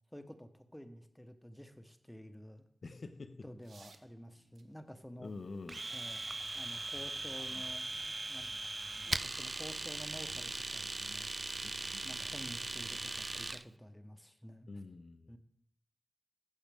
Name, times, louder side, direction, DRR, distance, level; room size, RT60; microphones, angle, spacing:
voice 1, 0.1-2.7 3.4-5.3 5.9-8.5 9.0-11.3 12.0-14.7 15.3-15.4, equal, 5° left, 0.9 m, -51 dB
voice 2, 2.8-3.5 5.2-5.8 11.6-11.7 14.7-15.4, left 3 dB, 60° left, 0.6 m, -46 dB
sound 1, 3.6-10.2, right 4 dB, 85° right, 0.8 m, -67 dB
Domestic sounds home sounds, 5.7-13.6, right 2 dB, 35° right, 0.3 m, -39 dB
sound 2, 5.7-12.2, right 2 dB, 70° right, 2.1 m, -62 dB
15.0 x 6.3 x 3.5 m
wide cardioid pair, 80°, 0 cm